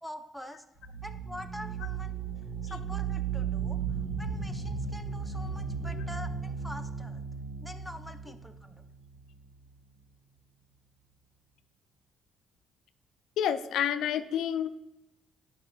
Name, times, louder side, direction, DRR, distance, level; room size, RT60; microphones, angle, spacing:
voice 1, 0.0-0.6 1.0-2.2 2.6-3.8 4.2-7.2 7.6-8.8, left 1 dB, ahead, 6 dB, 0.6 m, -45 dB
sound 1, 0.8-9.4, right 6 dB, 30° right, 2.7 m, -35 dB
voice 2, 13.4-14.7, left 9 dB, 80° left, 10 dB, 0.4 m, -29 dB
10.0 x 5.7 x 2.3 m, 0.91 s
cardioid pair, 90°, 0 cm